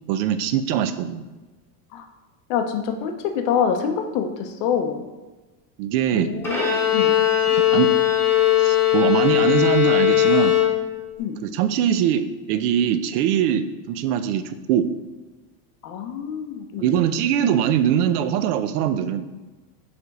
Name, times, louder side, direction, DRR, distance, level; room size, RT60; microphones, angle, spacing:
voice 1, 0.1-1.2 5.8-6.3 7.5-7.9 8.6-10.6 11.4-14.9 16.8-19.3, right 9 dB, 70° right, 11 dB, 0.6 m, -22 dB
voice 2, 2.5-5.0 6.1-7.1 11.2-11.4 15.8-16.9, left 7 dB, 40° left, 6 dB, 0.6 m, -26 dB
Bowed string instrument, 6.4-11.2, left 12 dB, 5° left, 1.0 m, -19 dB
6.9 x 3.4 x 4.0 m, 1.2 s
cardioid pair, 165°, 49 cm